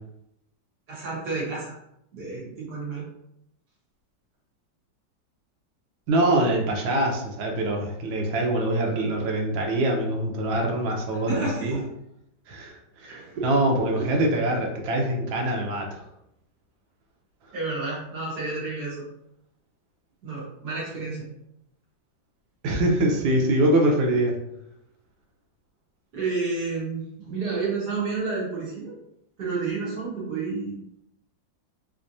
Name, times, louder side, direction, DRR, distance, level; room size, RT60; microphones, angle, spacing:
voice 1, 0.9-1.8 2.1-3.0 11.3-11.8 13.1-13.5 14.0-14.2 17.5-19.0 20.2-21.3 26.1-29.0 29.4-30.8, right 4 dB, 55° right, -5 dB, 1.7 m, -30 dB
voice 2, 6.1-11.8 12.5-16.0 22.6-24.4, right 1 dB, 80° right, 0 dB, 1.5 m, -24 dB
3.5 x 3.4 x 2.6 m, 0.80 s
omnidirectional pair, 2.1 m